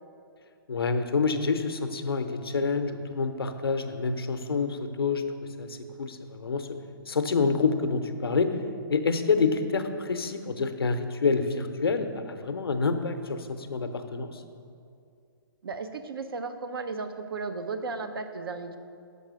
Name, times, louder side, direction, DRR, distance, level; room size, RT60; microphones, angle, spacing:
voice 1, 0.7-5.2 5.6-6.8 7.1-8.6 8.9-14.4, left 4 dB, 85° left, 8 dB, 0.7 m, -27 dB
voice 2, 15.6-18.8, right 4 dB, 75° right, 7 dB, 0.7 m, -35 dB
6.6 x 5.4 x 6.2 m, 2.4 s
hypercardioid pair, 130°, 12 cm